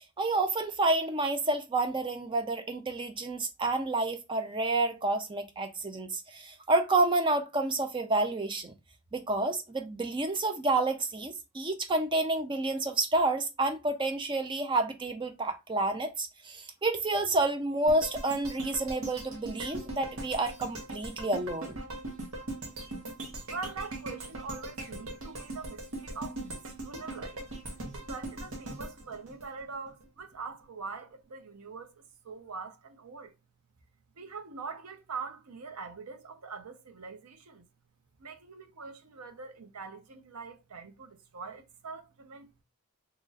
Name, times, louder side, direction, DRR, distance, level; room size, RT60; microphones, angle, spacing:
voice 1, 0.0-8.7 9.1-21.8, right 2 dB, 20° right, 0.4 m, -29 dB
sound 1, 17.9-30.1 30.5-30.6, right 2 dB, 70° right, 1.0 m, -40 dB
voice 2, 23.5-27.4 27.9-33.4 34.2-37.7 38.2-42.6, right 4 dB, 85° right, 0.7 m, -43 dB
3.0 x 2.4 x 3.9 m
head